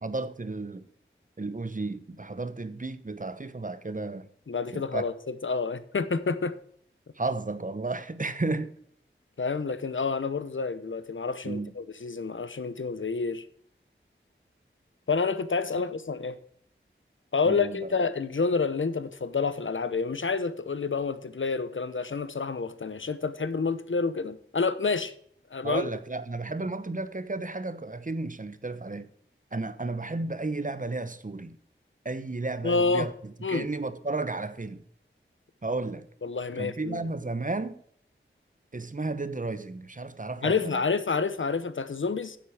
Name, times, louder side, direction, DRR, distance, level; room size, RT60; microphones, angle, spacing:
voice 1, 0.0-0.9 1.4-4.3 4.7-5.0 7.2-8.7 11.4-11.7 17.4-17.9 25.6-29.1 29.5-31.6 32.0-33.1 33.5-34.8 35.6-36.1 36.6-37.8 38.7-40.8, right 3 dB, 40° right, 1.0 m, -33 dB
voice 2, 4.5-6.6 9.4-13.5 15.1-16.4 17.3-25.1 25.5-25.9 32.6-33.1 33.4-33.7 36.2-37.1 40.4-42.4, left 4 dB, 70° left, 0.9 m, -28 dB
10.0 x 7.8 x 4.9 m
wide cardioid pair, 45°, 21 cm